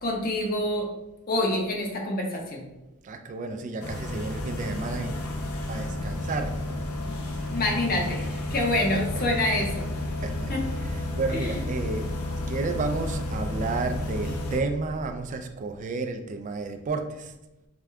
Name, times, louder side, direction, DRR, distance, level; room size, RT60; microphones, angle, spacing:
voice 1, 0.0-0.9 1.3-2.6 7.5-8.2 8.5-9.9 10.5-10.6 11.3-11.6, left 1 dB, 45° left, 0 dB, 0.8 m, -26 dB
voice 2, 3.0-5.2 5.7-6.6 7.4-7.5 8.9-9.0 10.2-10.5 10.8-12.2 12.5-17.3, right 3 dB, 35° right, 6 dB, 0.3 m, -31 dB
sound 1, 3.8-14.6, left 1 dB, 90° left, 0.6 m, -31 dB
4.9 x 2.2 x 3.4 m, 1.0 s
head